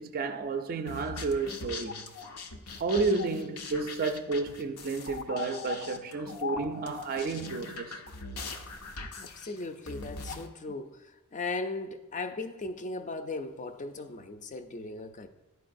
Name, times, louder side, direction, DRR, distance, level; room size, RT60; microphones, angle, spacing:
voice 1, 0.0-2.1 2.8-8.0, right 4 dB, 40° right, 0.4 m, -31 dB
sound 1, 0.9-10.5, left 4 dB, 85° left, 0.7 m, -40 dB
voice 2, 9.2-11.0 11.3-15.3, left 3 dB, 35° left, 0.4 m, -37 dB
11.5 x 4.6 x 2.5 m
head